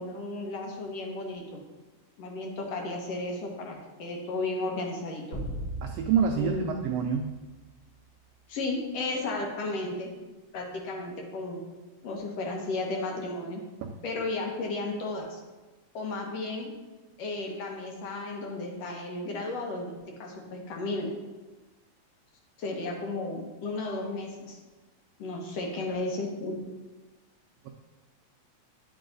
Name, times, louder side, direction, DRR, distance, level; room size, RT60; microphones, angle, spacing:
voice 1, 0.0-1.6 2.2-5.4 6.4-6.7 8.5-10.1 10.5-11.6 12.0-13.6 14.0-15.4 15.9-16.7 17.2-21.1 22.6-24.6 25.2-26.6, left 2 dB, 65° left, 1 dB, 1.9 m, -34 dB
sound 1, 5.3-7.9, right 1 dB, 35° left, 1.8 m, -39 dB
voice 2, 5.8-7.3 13.8-13.9 25.6-25.7, right 7 dB, 85° right, 3 dB, 1.4 m, -27 dB
9.5 x 4.7 x 3.8 m, 1.2 s
omnidirectional pair, 3.4 m